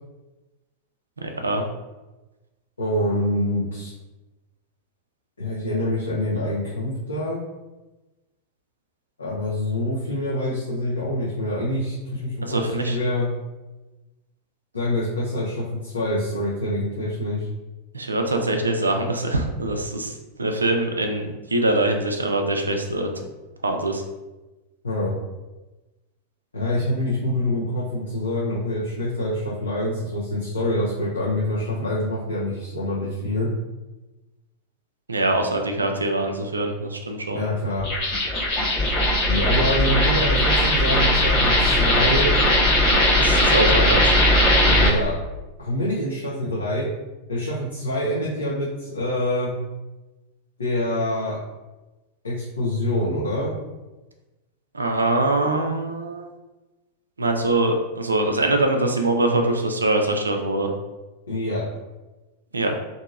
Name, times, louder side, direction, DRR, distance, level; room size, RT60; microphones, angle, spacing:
voice 1, 1.2-1.6 12.4-13.0 17.9-23.1 23.6-24.0 35.1-37.4 43.2-44.0 54.7-56.3 57.2-60.7 62.5-62.7, right 2 dB, 75° right, 4 dB, 0.4 m, -23 dB
voice 2, 2.8-3.9 5.4-7.4 9.2-13.3 14.7-17.5 24.8-25.1 26.5-33.5 37.3-37.9 39.2-42.3 43.7-43.9 44.6-45.1 45.6-46.9 47.3-49.5 50.6-51.4 52.2-53.6 61.3-61.6, left 1 dB, 75° left, -7 dB, 0.6 m, -25 dB
sound 1, 37.8-44.9, left 1 dB, 45° left, 0.9 m, -19 dB
2.7 x 2.6 x 2.4 m, 1.1 s
figure-of-eight pair, 90°, 0 cm